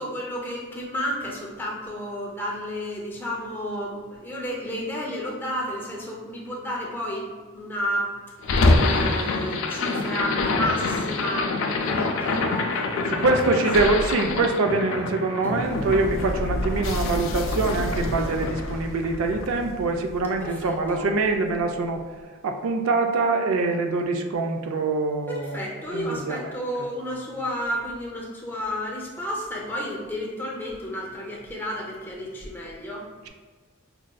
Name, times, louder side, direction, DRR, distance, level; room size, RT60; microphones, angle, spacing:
voice 1, 0.0-8.1 8.7-13.6 13.9-14.1 15.4-15.6 16.9-17.3 20.4-21.1 25.3-33.1, equal, 10° left, -3 dB, 0.5 m, -32 dB
sound 1, 8.4-20.6, left 2 dB, 60° left, 0.4 m, -26 dB
voice 2, 13.1-22.0 22.4-26.6, right 3 dB, 75° right, 4 dB, 0.4 m, -24 dB
5.2 x 2.4 x 2.2 m, 1.5 s
head